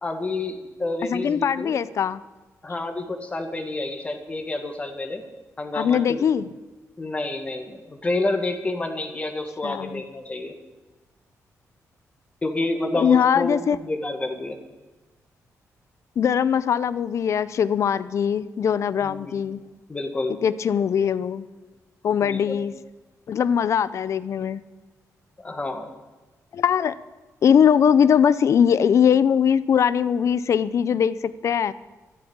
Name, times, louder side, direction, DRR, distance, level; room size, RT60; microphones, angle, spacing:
voice 1, 0.0-1.8 2.6-5.2 5.6-6.2 7.0-10.5 12.4-14.6 19.0-19.4 19.9-20.4 22.2-22.6 25.4-25.9, left 2 dB, 20° left, 5 dB, 1.8 m, -29 dB
voice 2, 1.1-2.2 5.7-6.4 9.6-10.0 12.9-13.8 16.2-19.6 20.4-21.5 22.0-22.7 23.3-24.6 26.5-26.9 27.4-31.7, left 8 dB, 55° left, 16 dB, 0.6 m, -21 dB
13.0 x 12.0 x 8.8 m, 1.2 s
wide cardioid pair, 145°, 6 cm